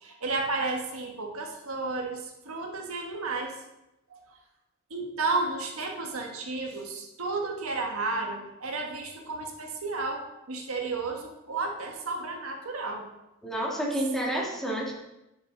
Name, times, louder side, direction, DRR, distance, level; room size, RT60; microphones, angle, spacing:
voice 1, 0.0-3.5 4.1-4.2 4.9-13.0, right 3 dB, 70° right, 2 dB, 1.4 m, -32 dB
voice 2, 13.4-14.9, right 1 dB, ahead, -3 dB, 1.8 m, -29 dB
9.8 x 7.1 x 3.9 m, 0.92 s
head